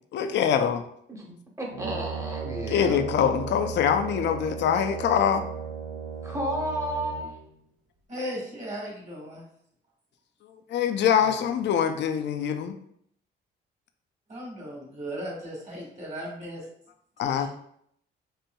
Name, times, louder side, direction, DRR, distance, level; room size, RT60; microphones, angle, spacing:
voice 1, 0.1-0.8 2.7-5.4 10.5-12.7 17.2-17.5, left 8 dB, 65° left, 7 dB, 0.4 m, -24 dB
voice 2, 1.1-3.0 6.2-7.3 11.2-11.4, equal, 15° right, 0 dB, 0.9 m, -32 dB
Brass instrument, 1.7-7.5, right 6 dB, 70° right, 0.9 m, -36 dB
voice 3, 8.1-9.4 14.3-16.6 17.2-17.5, equal, 35° right, -2 dB, 1.4 m, -37 dB
4.3 x 2.6 x 2.2 m, 0.69 s
cardioid pair, 90°, 20 cm